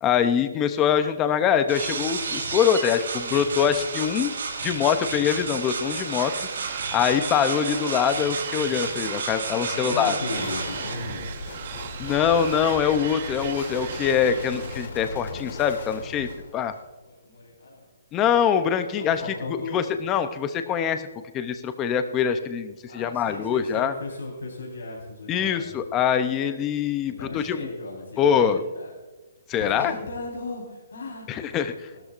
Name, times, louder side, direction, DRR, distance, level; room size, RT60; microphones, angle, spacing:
voice 1, 0.0-4.3 4.6-6.3 6.9-10.1 12.0-16.3 16.5-16.7 18.1-19.2 19.7-21.1 21.3-23.9 25.3-27.6 28.2-28.6 29.5-30.0 31.3-31.9, left 8 dB, 15° left, 9 dB, 0.6 m, -23 dB
sound 1, 1.7-10.9, right 4 dB, 65° right, 3.9 m, -32 dB
sound 2, 6.2-14.9, right 7 dB, 40° right, 1.2 m, -37 dB
voice 2, 9.5-11.4 17.0-17.9 18.7-19.9 22.9-25.6 27.0-28.9 29.6-31.7 31.9-32.0, left 3 dB, 85° left, -2 dB, 4.1 m, -37 dB
sound 3, 10.3-16.9, left 2 dB, 50° left, 2.7 m, -38 dB
19.0 x 13.0 x 2.5 m, 1.2 s
hypercardioid pair, 175°, 0 cm